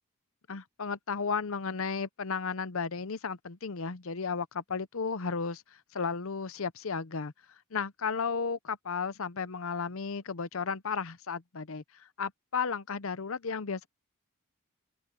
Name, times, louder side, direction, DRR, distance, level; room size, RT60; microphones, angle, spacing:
voice 1, 0.5-5.6 5.9-7.3 7.7-13.9, left 5 dB, 65° left, 0.7 m, -34 dB
open air
head